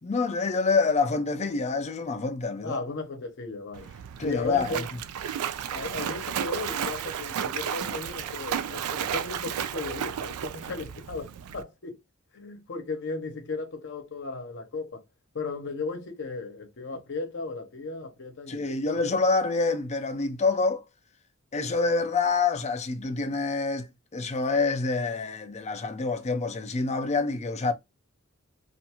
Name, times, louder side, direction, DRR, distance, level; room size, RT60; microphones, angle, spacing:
voice 1, 0.0-2.8 4.2-4.8 18.5-20.8 21.5-27.7, left 4 dB, 30° left, 0.5 m, -27 dB
voice 2, 2.6-3.9 4.2-4.8 5.7-12.0 12.3-15.0 15.3-18.7, left 3 dB, 55° left, 0.7 m, -36 dB
Splash splatter, 3.7-11.6, right 9 dB, 85° right, 0.3 m, -33 dB
2.5 x 2.3 x 2.8 m
head